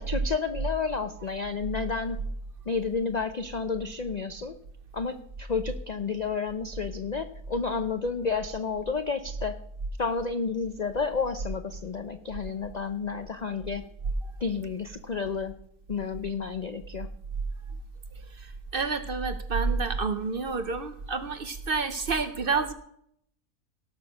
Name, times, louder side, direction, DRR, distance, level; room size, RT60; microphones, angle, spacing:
voice 1, 0.0-2.2 2.7-4.5 4.9-9.6 10.0-13.9 14.4-15.6 15.9-17.1, left 5 dB, 80° left, 9 dB, 0.3 m, -31 dB
voice 2, 18.3-22.7, right 4 dB, 50° right, 11 dB, 0.7 m, -29 dB
17.5 x 6.1 x 6.3 m, 0.70 s
omnidirectional pair, 1.6 m